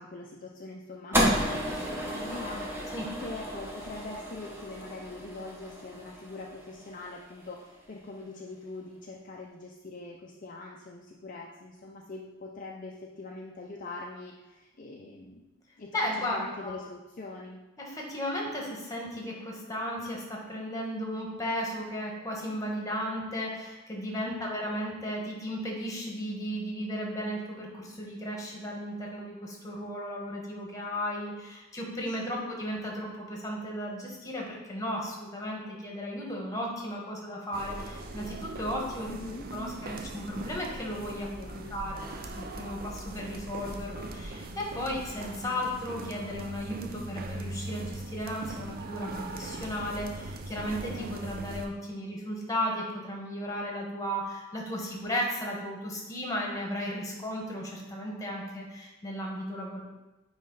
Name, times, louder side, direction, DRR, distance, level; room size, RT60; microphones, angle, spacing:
voice 1, 0.0-2.9 3.2-15.5 15.8-17.6 24.2-24.6 32.1-32.5 39.1-39.5 41.1-41.8, left 3 dB, 40° left, -1 dB, 0.5 m, -43 dB
sound 1, 1.1-7.5, equal, 10° right, 1.0 m, -32 dB
voice 2, 15.9-16.7 17.8-39.2 39.5-42.0 42.4-59.8, equal, 15° left, -1 dB, 1.3 m, -35 dB
sound 2, 37.5-51.7, right 2 dB, 45° right, 0.5 m, -40 dB
9.2 x 3.2 x 3.9 m, 1.0 s
head